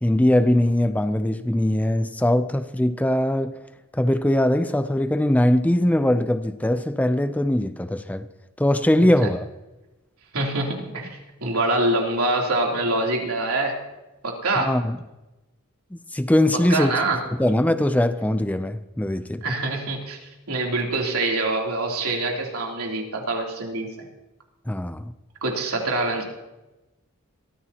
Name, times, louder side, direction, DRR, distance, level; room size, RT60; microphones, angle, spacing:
voice 1, 0.0-3.5 3.9-8.3 8.6-9.5 14.6-15.0 15.9-16.9 17.4-19.4 24.7-25.1, left 1 dB, 5° left, 0.4 m, -21 dB
voice 2, 10.3-13.8 14.2-14.8 16.7-17.2 19.4-23.9 25.4-26.2, right 2 dB, 85° right, 3.2 m, -25 dB
22.5 x 14.0 x 2.9 m
head